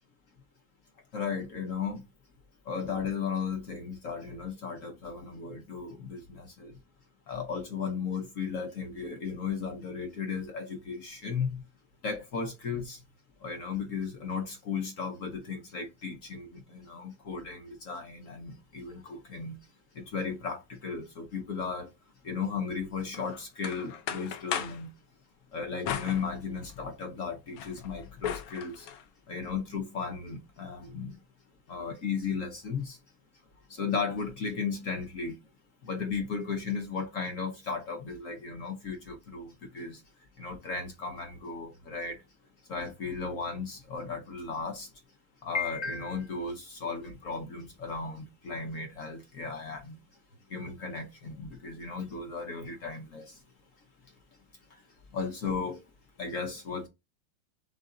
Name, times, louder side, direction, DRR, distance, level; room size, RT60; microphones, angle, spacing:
voice 1, 1.1-2.0 2.7-6.7 7.3-11.6 12.0-13.0 13.4-19.6 19.9-21.9 22.2-24.9 25.5-28.9 29.3-31.2 31.7-33.0 33.7-35.4 35.8-40.0 40.4-42.2 42.7-44.9 45.4-50.0 50.5-53.4 55.1-55.8 56.2-56.9, left 5 dB, 65° left, 0.8 m, -35 dB
sound 1, 23.1-24.9 25.8-26.9 27.3-29.0, left 9 dB, 80° left, 1.4 m, -37 dB
4.0 x 3.4 x 3.7 m
omnidirectional pair, 2.2 m